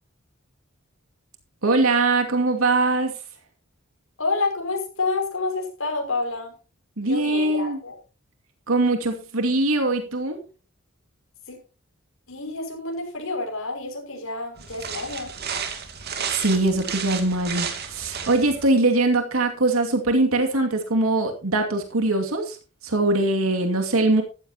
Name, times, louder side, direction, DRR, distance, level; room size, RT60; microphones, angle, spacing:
voice 1, 1.6-3.1 7.0-7.8 8.7-10.4 16.3-22.6 22.8-24.2, right 2 dB, 90° right, 4 dB, 2.4 m, -22 dB
voice 2, 4.2-6.5 7.0-8.0 11.5-11.6 12.3-15.3, left 3 dB, 75° left, 2 dB, 5.8 m, -28 dB
sound 1, 14.6-18.7, right 7 dB, 50° right, 2.5 m, -32 dB
14.5 x 13.0 x 2.9 m, 0.34 s
head